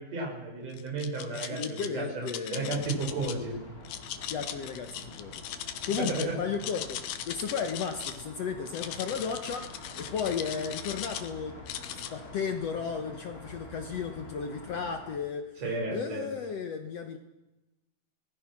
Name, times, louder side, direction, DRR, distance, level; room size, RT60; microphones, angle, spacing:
voice 1, 0.0-3.6 6.0-6.4 15.6-16.3, right 3 dB, 45° right, -1 dB, 6.9 m, -33 dB
sound 1, 0.7-1.9 2.3-3.3 3.8-6.3 6.5-8.2 8.7-11.3 11.7-12.1, left 10 dB, 80° left, 2.9 m, -39 dB
voice 2, 1.3-2.9 4.3-7.0 7.3-15.6 15.9-17.2, left 6 dB, 60° left, 6 dB, 1.8 m, -34 dB
sound 2, 2.7-15.2, left 2 dB, 25° left, 3.3 m, -47 dB
25.0 x 19.0 x 6.1 m, 1.0 s
omnidirectional pair, 4.0 m